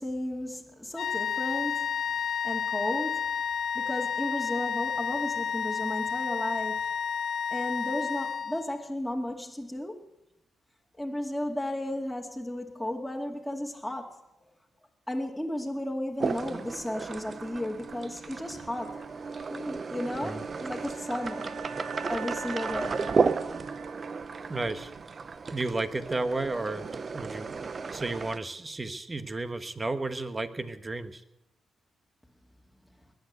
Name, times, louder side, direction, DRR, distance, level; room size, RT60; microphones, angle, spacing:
voice 1, 0.0-2.0 2.4-3.3 3.7-6.8 7.5-10.0 11.0-14.1 15.1-19.0 19.5-21.5 22.1-23.1, left 1 dB, ahead, -2 dB, 2.5 m, -34 dB
sound 1, 1.0-8.8, left 7 dB, 70° left, 0.6 m, -31 dB
sound 2, 16.2-28.4, right 5 dB, 50° right, 0.7 m, -34 dB
Wind instrument woodwind instrument, 17.2-25.3, right 5 dB, 85° right, 3.4 m, -43 dB
voice 2, 24.5-24.9 25.5-31.2, right 2 dB, 30° right, 9 dB, 1.4 m, -33 dB
21.0 x 8.2 x 8.2 m, 0.89 s
supercardioid pair, 55°, 0 cm